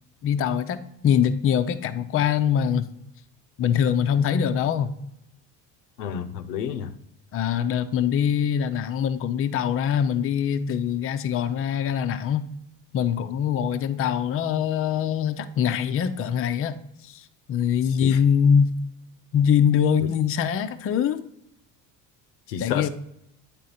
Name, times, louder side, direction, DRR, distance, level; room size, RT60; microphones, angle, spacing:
voice 1, 0.2-2.9 3.6-4.9 7.3-12.5 12.9-16.8 17.0-18.8 19.3-21.2 22.6-22.9, left 8 dB, 30° left, 0.5 m, -23 dB
voice 2, 6.0-6.9 18.0-18.2 20.0-20.1 22.5-22.9, left 8 dB, 80° left, 0.7 m, -30 dB
9.1 x 3.8 x 4.1 m
hypercardioid pair, 65°, 48 cm